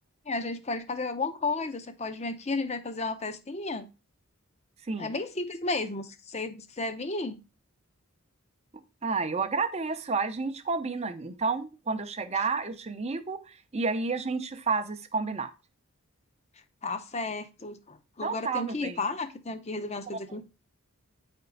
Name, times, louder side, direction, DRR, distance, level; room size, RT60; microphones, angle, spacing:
voice 1, 0.3-3.9 5.0-7.4 16.8-20.4, left 3 dB, 30° left, 10 dB, 0.8 m, -33 dB
voice 2, 9.0-15.5 18.2-19.0, right 4 dB, 30° right, 8 dB, 0.7 m, -30 dB
9.4 x 4.4 x 3.9 m, 0.29 s
head